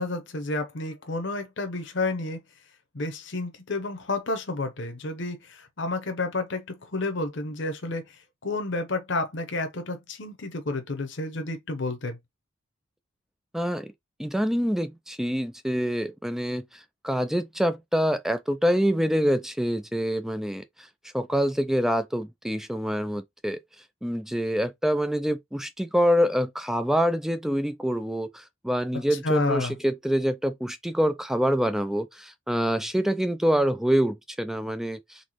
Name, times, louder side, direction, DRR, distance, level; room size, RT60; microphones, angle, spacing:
voice 1, 0.0-2.4 2.9-8.2 8.4-12.2 29.1-29.7, left 2 dB, 60° left, 0.8 m, -30 dB
voice 2, 13.5-13.9 14.2-16.6 17.0-20.6 21.1-23.6 24.0-35.2, equal, ahead, 0.3 m, -26 dB
4.0 x 3.5 x 3.0 m
head